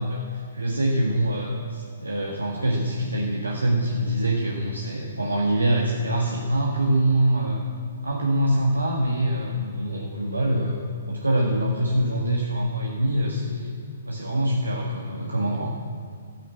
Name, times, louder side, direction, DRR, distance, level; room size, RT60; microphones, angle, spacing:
voice 1, 0.0-7.6 8.0-13.8 14.1-15.7, right 1 dB, 90° right, -2 dB, 1.8 m, -24 dB
12.5 x 10.0 x 7.7 m, 2.2 s
figure-of-eight pair, 125°, 0 cm